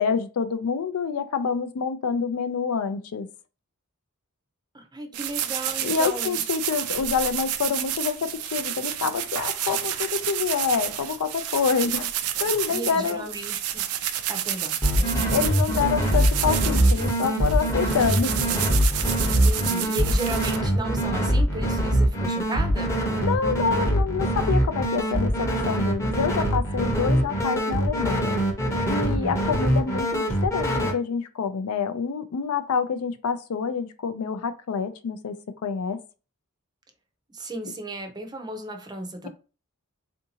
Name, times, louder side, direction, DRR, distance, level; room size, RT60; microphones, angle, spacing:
voice 1, 0.0-3.3 5.8-12.1 12.4-13.3 15.3-18.4 23.2-28.3 28.9-36.0 39.2-39.3, left 6 dB, 80° left, 0.4 m, -27 dB
voice 2, 4.7-6.4 12.7-13.8 14.3-15.3 19.4-23.0 29.0-29.4 37.3-39.3, right 1 dB, 20° right, 0.6 m, -35 dB
sound 1, 5.1-20.6, right 11 dB, 80° right, 0.4 m, -30 dB
sound 2, 14.8-30.9, right 1 dB, 15° left, 0.7 m, -24 dB
3.6 x 2.6 x 2.8 m
head